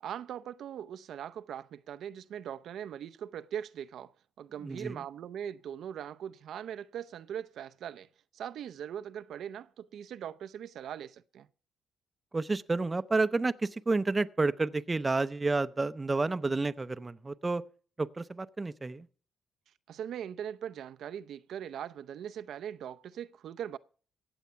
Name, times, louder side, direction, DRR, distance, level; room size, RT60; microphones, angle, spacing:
voice 1, 0.0-8.1 8.3-11.5 19.9-23.8, right 9 dB, 70° right, 0.6 m, -40 dB
voice 2, 4.6-5.0 12.3-17.6 18.0-19.1, right 3 dB, 20° right, 0.6 m, -30 dB
16.0 x 8.0 x 5.6 m
cardioid pair, 90°, 0 cm